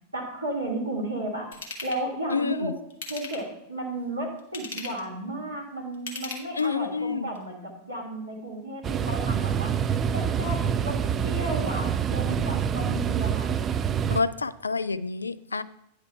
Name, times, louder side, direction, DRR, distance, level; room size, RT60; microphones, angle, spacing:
voice 1, 0.1-1.5 1.8-2.7 3.1-9.8 10.1-13.5, right 1 dB, 80° right, -2 dB, 2.0 m, -33 dB
Ratchet pawl / Tools, 1.5-2.0 2.9-3.6 4.4-5.1 5.9-6.8 7.3-7.4, left 3 dB, 60° left, 1.6 m, -38 dB
voice 2, 2.3-2.7 6.6-7.3 14.1-15.6, left 5 dB, 80° left, 15 dB, 0.4 m, -28 dB
sound 1, 8.8-14.2, right 8 dB, 25° right, 0.4 m, -26 dB
9.8 x 4.9 x 4.6 m, 0.77 s
figure-of-eight pair, 90°, 0 cm